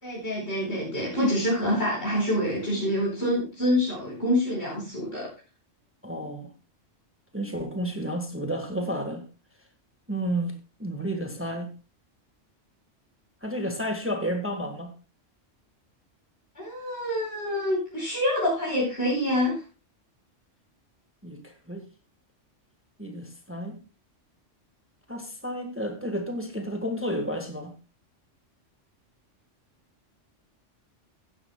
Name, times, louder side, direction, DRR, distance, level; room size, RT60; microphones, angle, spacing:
voice 1, 0.0-5.3 16.6-19.6, left 1 dB, 55° left, 5.2 m, -26 dB
voice 2, 6.0-6.5 7.3-9.3 10.1-11.7 13.4-14.9 21.2-21.8 23.0-23.8 25.1-27.7, equal, 10° right, 1.5 m, -31 dB
16.0 x 11.0 x 2.2 m
omnidirectional pair, 1.3 m